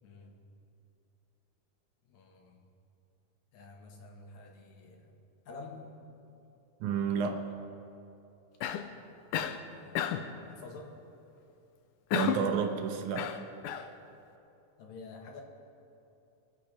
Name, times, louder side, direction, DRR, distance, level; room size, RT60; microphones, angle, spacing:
voice 1, 0.0-0.4 2.1-2.7 3.5-5.2 5.5-6.3 9.3-11.0 14.8-15.4, left 3 dB, 70° left, 2 dB, 2.5 m, -49 dB
voice 2, 6.8-7.5 12.1-13.4, right 7 dB, 75° right, 5 dB, 2.1 m, -31 dB
Cough, 8.6-8.9 9.3-9.6 10.0-10.3 12.1-12.5 13.1-13.9, left 9 dB, 85° left, 2.1 m, -32 dB
22.0 x 8.1 x 5.0 m, 2.8 s
omnidirectional pair, 3.7 m